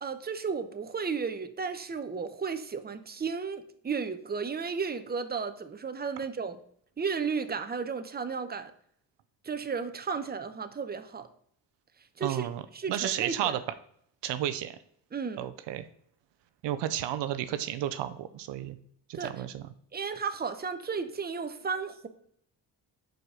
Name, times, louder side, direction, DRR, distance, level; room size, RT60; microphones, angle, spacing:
voice 1, 0.0-6.6 7.0-8.7 9.4-11.3 12.2-13.6 15.1-15.4 19.1-19.3 19.9-22.1, right 5 dB, 20° right, 0.8 m, -34 dB
voice 2, 12.2-12.6 12.9-13.6 14.2-14.8 15.4-15.9 16.6-18.8 19.1-19.7, right 11 dB, 75° right, 0.6 m, -32 dB
5.2 x 4.7 x 6.2 m
cardioid pair, 75°, 43 cm